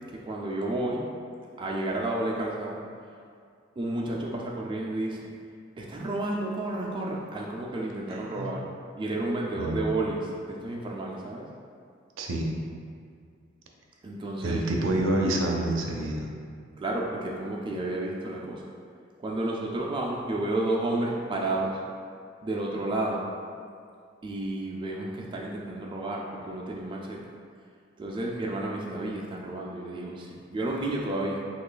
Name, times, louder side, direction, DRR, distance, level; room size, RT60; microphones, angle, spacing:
voice 1, 0.1-1.1 1.6-2.8 3.8-5.3 5.8-8.6 9.0-11.5 14.0-14.7 16.8-18.7 19.2-21.8 22.4-23.2 24.2-27.2 28.0-31.4, right 2 dB, 25° right, -2 dB, 0.3 m, -31 dB
voice 2, 8.1-8.5 9.6-9.8 12.2-12.5 14.4-16.3, right 1 dB, 85° right, 0 dB, 0.5 m, -27 dB
3.0 x 2.4 x 3.8 m, 2.2 s
head